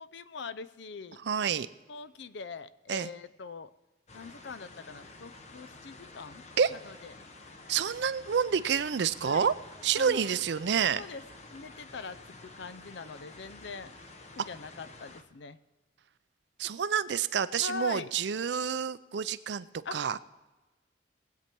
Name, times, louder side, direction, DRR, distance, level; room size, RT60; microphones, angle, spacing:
voice 1, 0.0-1.2 1.9-3.7 4.1-6.4 6.7-7.1 9.2-9.5 10.0-10.4 11.0-11.2 11.5-13.9 14.3-15.6 17.6-18.1 19.8-20.2, left 4 dB, 65° left, 15 dB, 0.6 m, -42 dB
voice 2, 1.2-1.7 2.9-3.1 6.6-6.7 7.7-9.5 9.8-11.0 16.6-19.7 19.9-20.2, right 7 dB, 65° right, 15 dB, 0.5 m, -28 dB
sound 1, 4.1-15.2, left 2 dB, 35° left, 0.9 m, -50 dB
20.0 x 8.4 x 4.5 m, 1.2 s
head